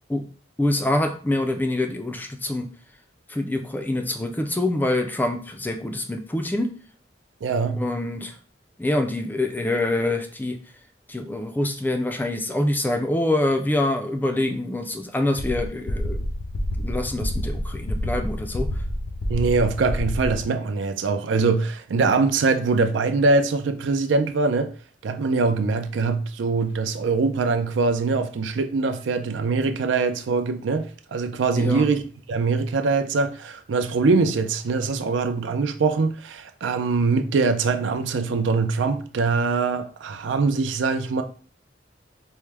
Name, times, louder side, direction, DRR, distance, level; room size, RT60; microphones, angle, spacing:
voice 1, 0.6-2.7 3.3-6.7 7.7-8.3 8.8-10.6 11.1-16.2 16.8-18.8 31.6-31.9, left 1 dB, 10° left, 0.3 m, -25 dB
voice 2, 7.4-7.8 19.3-24.7 25.0-41.2, right 4 dB, 80° right, 0.4 m, -23 dB
sound 1, 15.4-20.4, equal, 80° left, 0.6 m, -28 dB
4.5 x 2.1 x 3.3 m
head